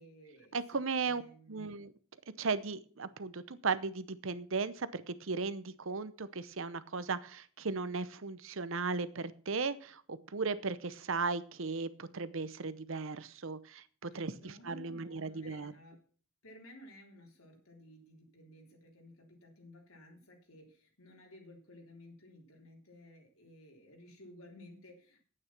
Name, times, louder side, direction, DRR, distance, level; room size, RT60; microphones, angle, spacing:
voice 1, 0.0-1.7 14.4-16.0 16.4-25.2, left 1 dB, 80° left, 1 dB, 3.6 m, -55 dB
voice 2, 0.5-1.2 1.5-1.9 2.4-15.7, right 4 dB, 65° right, 15 dB, 0.8 m, -36 dB
9.8 x 8.8 x 5.9 m, 0.44 s
head